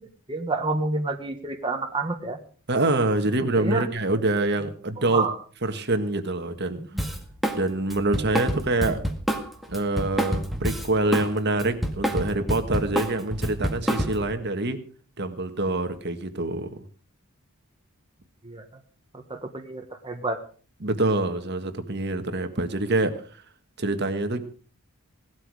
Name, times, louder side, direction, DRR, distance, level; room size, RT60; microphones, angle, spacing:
voice 1, 0.3-2.4 3.6-3.9 5.1-5.3 6.9-7.0 18.4-18.6 19.1-20.4, right 3 dB, 20° right, 3 dB, 1.4 m, -28 dB
voice 2, 2.7-5.3 5.6-6.8 7.5-9.0 9.7-14.8 15.2-16.8 20.8-23.4 23.8-24.4, right 2 dB, 50° right, 8 dB, 1.6 m, -25 dB
Drum kit, 7.0-7.6 7.9-11.3 11.6-14.3, equal, ahead, 1.8 m, -27 dB
18.0 x 12.5 x 4.9 m, 0.41 s
head